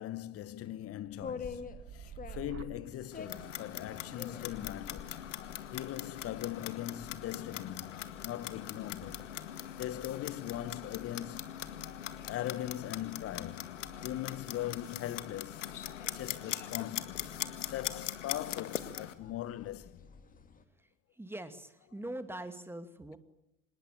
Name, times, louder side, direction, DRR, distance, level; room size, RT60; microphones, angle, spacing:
voice 1, 0.0-5.2 5.7-15.6 16.1-17.3 17.6-20.1, left 13 dB, 40° left, 1.4 m, -41 dB
sound 1, 0.9-8.9 9.4-9.8, right 8 dB, 35° right, 2.4 m, -53 dB
sound 2, 1.1-20.6, left 5 dB, 20° left, 2.8 m, -51 dB
Clock, 3.1-19.1, left 10 dB, 75° left, 2.0 m, -41 dB
voice 2, 21.2-23.2, right 1 dB, 5° right, 2.5 m, -42 dB
26.0 x 20.5 x 9.1 m
figure-of-eight pair, 80°, 37 cm